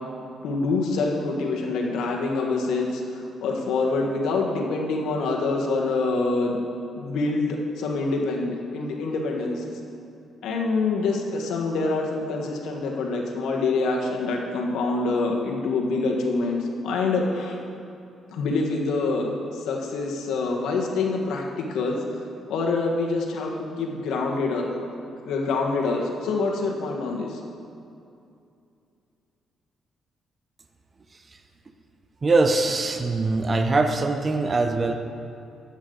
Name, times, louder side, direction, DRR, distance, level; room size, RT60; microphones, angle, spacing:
voice 1, 0.4-6.6 7.0-9.6 10.4-17.6 18.3-22.0 22.5-24.7 25.2-27.4, left 3 dB, 80° left, 0 dB, 1.5 m, -26 dB
voice 2, 32.2-34.9, right 3 dB, 30° right, 6 dB, 0.7 m, -22 dB
13.0 x 8.3 x 3.9 m, 2.5 s
cardioid pair, 90°, 0 cm